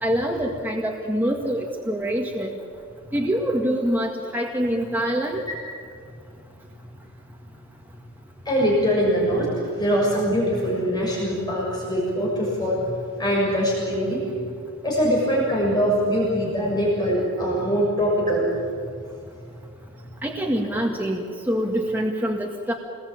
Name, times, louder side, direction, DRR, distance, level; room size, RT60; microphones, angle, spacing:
voice 1, 0.0-2.6 3.1-5.4 20.2-22.7, equal, 10° right, 0 dB, 1.8 m, -25 dB
voice 2, 8.4-12.8 13.2-14.2 14.8-18.4 20.6-20.7, equal, 20° left, -5 dB, 6.8 m, -22 dB
28.0 x 21.0 x 8.9 m, 2.2 s
head